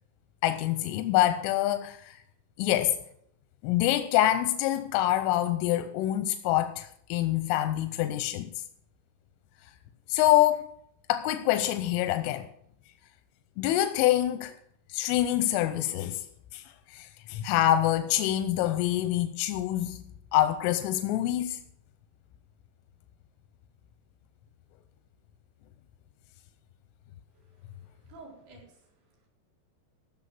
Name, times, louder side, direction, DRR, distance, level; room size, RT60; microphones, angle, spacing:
voice 1, 0.4-2.2 2.6-3.0 3.6-8.5 10.1-10.7 11.1-12.5 13.6-14.5 14.9-16.2 16.5-16.6 16.9-20.0 20.3-21.6, left 13 dB, 90° left, 3.2 m, -26 dB
voice 2, 27.3-29.3, right 3 dB, 55° right, 5.9 m, -53 dB
14.5 x 6.4 x 7.5 m
omnidirectional pair, 5.6 m